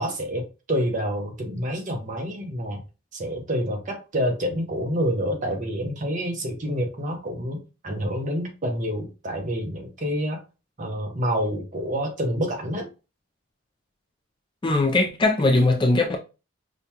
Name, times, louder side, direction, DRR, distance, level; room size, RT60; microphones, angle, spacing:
voice 1, 0.0-2.8 3.1-10.4 10.8-12.9, equal, 35° right, 0.8 m, -28 dB
voice 2, 14.6-16.2, left 2 dB, 20° left, 0.4 m, -20 dB
5.1 x 2.3 x 2.8 m
head